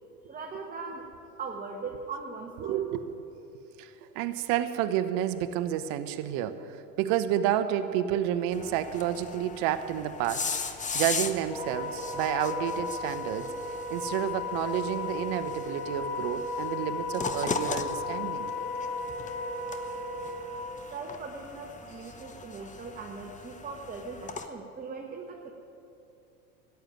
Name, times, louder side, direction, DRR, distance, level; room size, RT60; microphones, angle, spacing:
voice 1, 0.3-1.1 1.4-2.8 20.9-25.5, right 4 dB, 20° right, 1 dB, 1.4 m, -40 dB
voice 2, 2.6-3.2 3.8-10.5 10.9-13.5 13.9-18.5, right 11 dB, 55° right, 9 dB, 1.0 m, -30 dB
sound 1, 8.5-24.5, left 4 dB, 15° left, 1.0 m, -39 dB
Wind instrument woodwind instrument, 11.5-20.5, left 3 dB, 90° left, 2.1 m, -35 dB
14.0 x 9.4 x 9.2 m, 2.8 s
hypercardioid pair, 85°, 43 cm